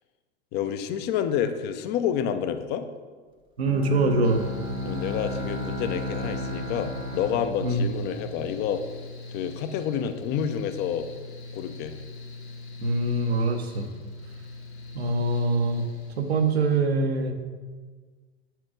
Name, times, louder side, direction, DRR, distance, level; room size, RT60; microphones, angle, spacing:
voice 1, 0.5-2.9 4.8-8.8 9.3-11.1 11.5-11.9, left 8 dB, 30° left, 9 dB, 0.5 m, -29 dB
Bowed string instrument, 3.6-8.6, left 1 dB, 15° right, 0.8 m, -34 dB
voice 2, 3.6-4.4 7.6-7.9 12.8-13.9 14.9-15.9 16.2-17.3, right 2 dB, 70° right, 5 dB, 0.9 m, -24 dB
Mechanical fan, 4.2-16.8, left 3 dB, 75° left, 1.3 m, -42 dB
7.5 x 4.6 x 4.9 m, 1.4 s
figure-of-eight pair, 85°, 33 cm